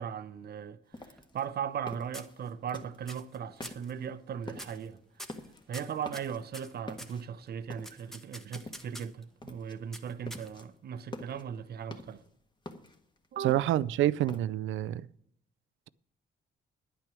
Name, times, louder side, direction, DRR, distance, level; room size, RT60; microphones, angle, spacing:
voice 1, 0.0-5.0 5.7-12.2 13.3-13.6, right 8 dB, 55° right, 0.8 m, -38 dB
sound 1, 0.9-3.2 3.6-4.1 4.4-4.8 5.2-5.7 6.0-6.5 6.9-8.2 8.6-9.1 9.4-9.8 10.1-10.7 11.0-12.3 12.7-14.4, left 2 dB, 20° left, 1.4 m, -46 dB
sound 2, 0.9-1.8 2.1-2.7 3.1-3.4 3.6-3.9 4.5-4.9 5.2-7.2 7.8-9.2 9.9-10.8, equal, ahead, 1.1 m, -46 dB
voice 2, 13.4-15.1, right 13 dB, 80° right, 0.5 m, -27 dB
10.5 x 9.1 x 6.1 m
cardioid pair, 90°, 20 cm